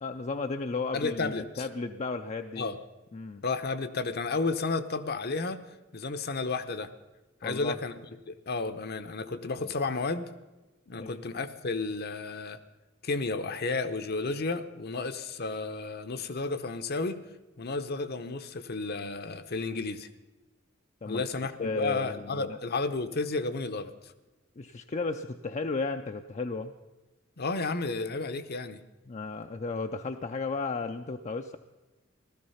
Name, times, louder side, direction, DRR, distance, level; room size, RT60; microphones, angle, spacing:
voice 1, 0.0-2.7 3.1-3.4 7.4-7.8 10.9-11.2 21.0-21.2 21.6-22.6 24.6-26.7 29.1-31.6, left 3 dB, 35° left, 6 dB, 0.5 m, -34 dB
voice 2, 0.9-1.7 2.6-2.9 3.4-5.6 5.9-6.9 7.4-8.0 8.3-10.3 10.9-12.6 13.0-17.2 17.6-20.1 21.1-24.1 27.4-28.8, left 3 dB, 55° left, 10 dB, 0.8 m, -32 dB
15.5 x 13.0 x 5.7 m, 1.1 s
head